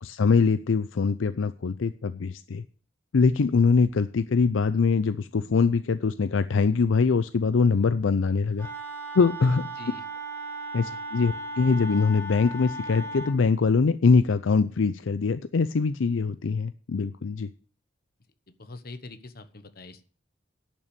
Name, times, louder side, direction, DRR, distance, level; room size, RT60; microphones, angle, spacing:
voice 1, 0.0-2.6 3.1-8.7 9.1-9.6 10.7-17.5, left 4 dB, 75° left, 12 dB, 0.5 m, -23 dB
Wind instrument woodwind instrument, 8.6-13.4, right 2 dB, 10° left, 2.0 m, -36 dB
voice 2, 18.5-20.0, left 2 dB, 50° left, 10 dB, 1.2 m, -42 dB
11.0 x 6.1 x 8.2 m, 0.42 s
head